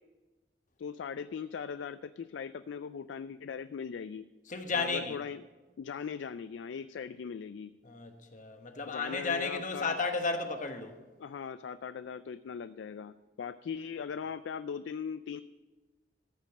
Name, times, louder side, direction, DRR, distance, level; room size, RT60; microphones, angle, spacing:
voice 1, 0.8-4.2 4.7-5.4 5.8-7.7 8.9-10.0 11.2-15.4, left 6 dB, 85° left, 0.3 m, -39 dB
voice 2, 4.5-5.2 7.8-11.0, left 4 dB, 45° left, 1.2 m, -33 dB
14.0 x 5.3 x 6.6 m
head